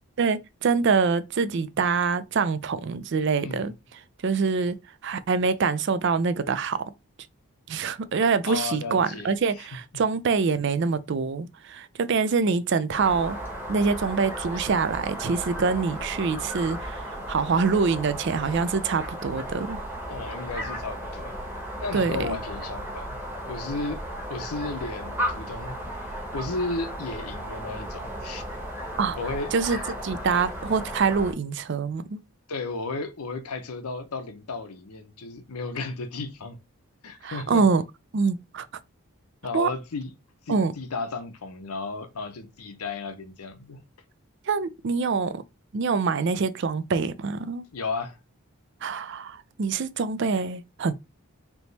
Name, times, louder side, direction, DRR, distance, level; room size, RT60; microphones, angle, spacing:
voice 1, 0.2-3.7 4.2-4.8 5.0-6.8 7.7-13.4 13.7-19.8 21.9-22.4 29.0-29.2 29.5-32.2 37.2-37.8 38.1-38.7 39.5-39.7 40.5-40.7 44.5-45.4 45.7-47.6 48.8-50.9, right 5 dB, 55° right, 0.4 m, -25 dB
voice 2, 8.4-9.7 20.1-21.3 21.8-23.2 23.5-24.0 24.3-28.4 29.1-29.5 32.5-36.6 37.0-37.6 39.4-40.1 40.5-43.8 47.7-48.2, left 3 dB, 90° left, 0.8 m, -34 dB
sound 1, 12.9-31.3, equal, 10° right, 1.1 m, -35 dB
3.5 x 2.9 x 4.0 m
head